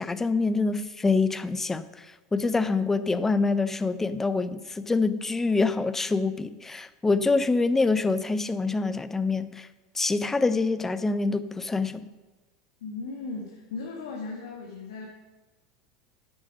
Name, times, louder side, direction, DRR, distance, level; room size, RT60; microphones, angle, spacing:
voice 1, 0.0-2.1 2.3-9.7 10.0-12.1, left 3 dB, 15° left, 14 dB, 0.6 m, -25 dB
voice 2, 12.8-15.1, left 4 dB, 75° left, -1 dB, 1.7 m, -37 dB
10.0 x 8.5 x 5.1 m, 1.2 s
hypercardioid pair, 85°, 3 cm